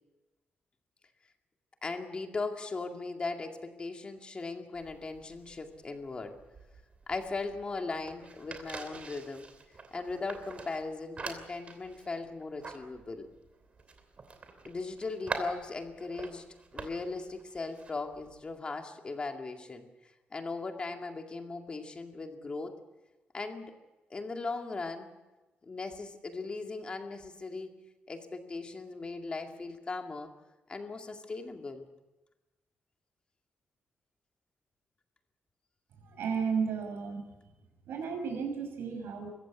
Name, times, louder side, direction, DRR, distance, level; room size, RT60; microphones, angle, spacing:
voice 1, 1.8-6.4 7.1-9.5 9.9-13.3 14.7-16.5 16.7-19.9 20.3-22.8 23.3-23.7 24.1-25.1 25.6-27.7 28.1-30.3 30.7-31.9, left 3 dB, 25° left, 4 dB, 2.2 m, -38 dB
sound 1, 4.7-18.5, right 4 dB, 35° right, 3.0 m, -45 dB
voice 2, 36.0-37.2 37.9-39.3, right 6 dB, 80° right, 5 dB, 5.9 m, -33 dB
24.5 x 15.0 x 8.3 m, 1.1 s
cardioid pair, 145°, 4 cm